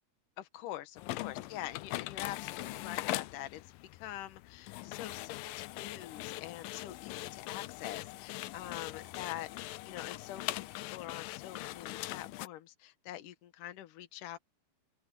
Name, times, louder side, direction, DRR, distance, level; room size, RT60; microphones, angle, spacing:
voice 1, 0.4-3.6 3.9-14.4, left 13 dB, 60° left, 2.6 m, -45 dB
sound 1, 1.0-12.5, left 18 dB, 90° left, 2.0 m, -41 dB
open air
omnidirectional pair, 4.8 m